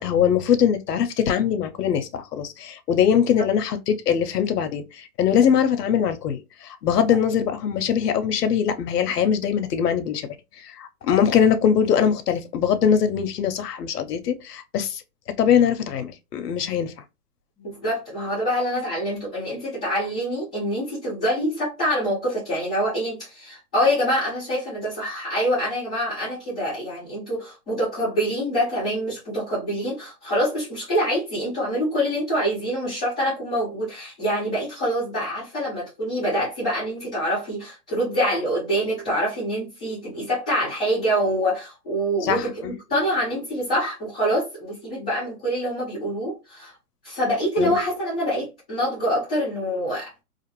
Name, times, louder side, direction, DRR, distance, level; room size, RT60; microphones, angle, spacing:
voice 1, 0.0-15.0 15.3-16.9 42.2-42.7 47.6-47.8, left 8 dB, 90° left, 0.6 m, -22 dB
voice 2, 17.6-46.7 47.0-50.1, equal, 5° left, 0.4 m, -25 dB
2.5 x 2.4 x 2.9 m
hypercardioid pair, 160°, 46 cm